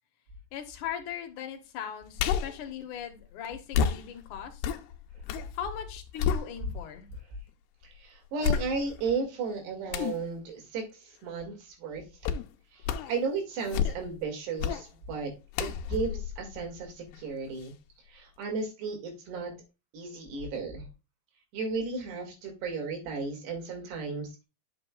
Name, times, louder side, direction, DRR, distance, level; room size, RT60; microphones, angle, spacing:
voice 1, 0.5-4.6 5.5-7.1, left 8 dB, 65° left, 5 dB, 2.0 m, -39 dB
sound 1, 2.2-2.6 3.7-5.5 5.9-7.0 7.5-7.6 8.4-9.1 9.9-10.2 12.2-12.5 12.8-13.2 13.6-14.2 14.6-14.9 15.5-17.2 17.6-17.7, left 8 dB, 85° left, 2.8 m, -30 dB
voice 2, 7.8-12.3 12.7-15.3 15.6-17.7 18.1-19.5 19.9-20.8 21.5-24.4, right 4 dB, 80° right, 2 dB, 4.3 m, -34 dB
8.9 x 6.5 x 2.3 m, 0.28 s
omnidirectional pair, 4.7 m